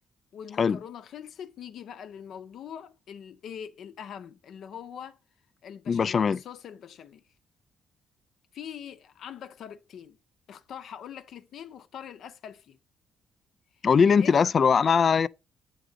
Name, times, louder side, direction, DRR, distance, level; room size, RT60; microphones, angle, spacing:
voice 1, 0.3-5.2 5.6-7.2 8.5-10.2 10.5-12.8 14.1-14.5, left 8 dB, 70° left, 0.7 m, -43 dB
voice 2, 5.9-6.4 13.8-15.3, left 6 dB, 45° left, 0.3 m, -21 dB
8.2 x 3.7 x 5.0 m
cardioid pair, 90°, 0 cm